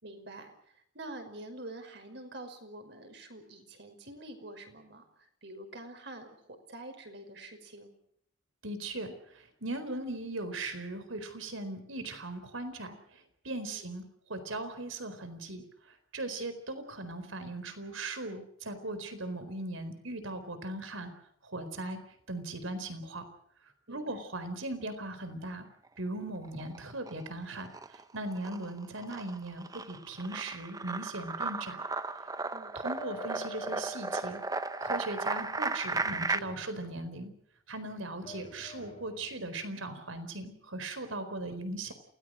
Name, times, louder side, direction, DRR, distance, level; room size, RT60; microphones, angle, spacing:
voice 1, 0.0-6.4 6.7-7.9 13.7-13.9 23.9-24.2 32.5-32.7, right 1 dB, 55° right, 6 dB, 5.5 m, -46 dB
voice 2, 8.6-21.1 21.4-22.0 22.3-23.3 23.6-25.7 26.0-31.8 32.7-34.4 34.8-37.3 37.7-41.9, right 2 dB, 85° right, 10 dB, 4.3 m, -39 dB
sound 1, 26.4-27.3 27.6-36.4, right 3 dB, 20° right, 0.8 m, -35 dB
sound 2, 33.0-34.9 36.1-37.3 38.2-39.6, equal, 35° left, 2.7 m, -48 dB
28.5 x 19.0 x 6.4 m, 0.67 s
head